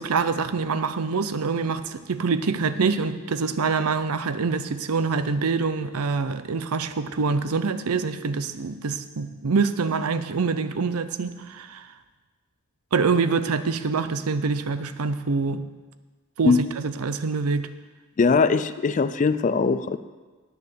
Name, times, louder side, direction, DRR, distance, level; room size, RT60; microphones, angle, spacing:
voice 1, 0.0-11.9 12.9-15.6 16.4-17.7, right 4 dB, 85° right, 12 dB, 0.6 m, -25 dB
voice 2, 18.2-20.0, left 4 dB, 35° left, 14 dB, 0.3 m, -21 dB
9.9 x 6.9 x 6.8 m, 1.3 s
head